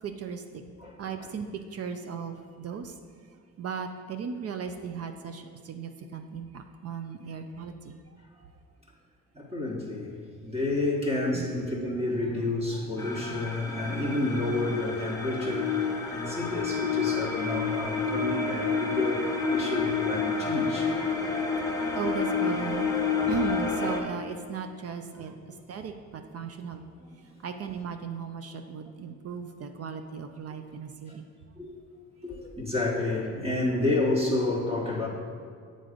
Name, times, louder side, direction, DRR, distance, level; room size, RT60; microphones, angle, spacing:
voice 1, 0.0-0.6 1.0-3.0 3.6-7.9 8.4-8.5 11.3-11.5 22.0-22.9 23.3-26.8 27.4-31.2, right 6 dB, 55° right, 6 dB, 0.5 m, -36 dB
voice 2, 0.8-1.3 9.3-21.0 27.0-27.2 31.1-31.2 31.6-31.8 32.2-35.1, left 2 dB, 20° right, -3 dB, 1.2 m, -30 dB
sound 1, 13.0-24.0, left 5 dB, 10° left, 0.9 m, -29 dB
7.7 x 3.9 x 5.0 m, 2.2 s
cardioid pair, 90°, 30 cm